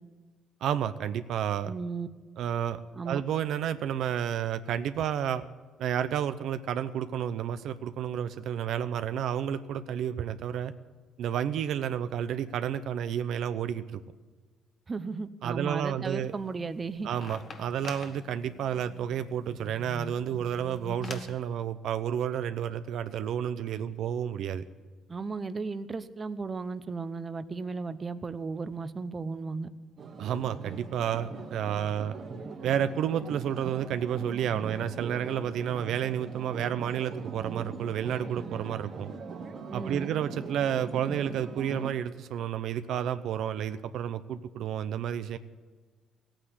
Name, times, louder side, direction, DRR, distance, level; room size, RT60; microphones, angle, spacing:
voice 1, 0.6-1.7 2.4-2.8 3.0-5.4 5.8-10.7 11.2-14.0 15.4-16.3 17.0-24.6 30.2-32.1 32.6-39.1 39.7-45.4, right 9 dB, 70° right, 11 dB, 0.7 m, -31 dB
voice 2, 1.6-2.1 2.9-3.2 14.9-17.1 25.1-29.7 39.7-40.1, right 4 dB, 25° right, 12 dB, 0.8 m, -35 dB
sound 1, 16.3-21.4, left 4 dB, 40° left, 1.3 m, -45 dB
sound 2, 30.0-41.9, right 4 dB, 45° right, 1.3 m, -41 dB
16.0 x 9.0 x 9.7 m, 1.4 s
cardioid pair, 110°, 0 cm